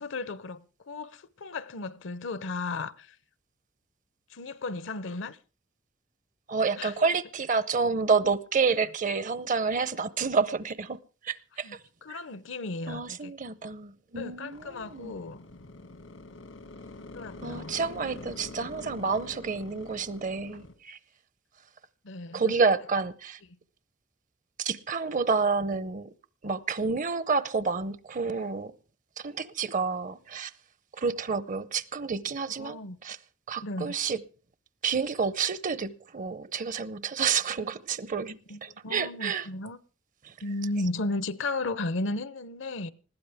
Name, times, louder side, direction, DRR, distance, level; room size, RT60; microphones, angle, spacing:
voice 1, 0.0-3.2 4.3-5.4 6.8-7.1 11.6-13.3 14.2-15.4 17.0-17.8 22.0-22.5 32.5-33.0 33.6-34.0 38.5-39.8 40.4-42.9, left 2 dB, 70° left, 0.7 m, -35 dB
voice 2, 6.5-11.0 11.2-11.7 12.9-15.1 17.4-21.0 22.3-23.4 24.6-26.1 26.4-28.7 29.2-30.5 31.0-33.2 33.5-34.2 34.8-39.4, right 5 dB, 40° right, 0.7 m, -29 dB
sound 1, 14.5-20.7, left 2 dB, 90° left, 2.1 m, -45 dB
20.5 x 15.5 x 3.5 m
head